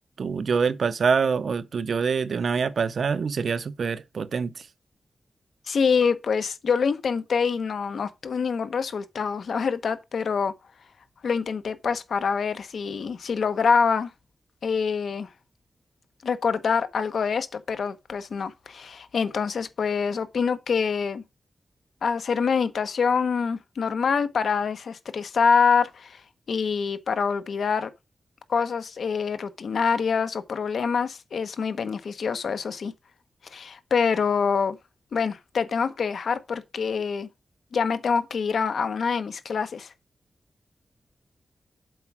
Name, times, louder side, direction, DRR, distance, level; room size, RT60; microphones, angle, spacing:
voice 1, 0.2-4.5, right 5 dB, 75° right, 0.7 m, -25 dB
voice 2, 5.7-10.5 11.2-14.1 14.6-15.3 16.2-21.2 22.0-26.2 26.5-27.9 28.5-32.9 33.5-34.8 35.1-37.3 37.7-39.9, left 5 dB, 85° left, 1.0 m, -25 dB
7.7 x 4.8 x 5.9 m
wide cardioid pair, 115°, 0 cm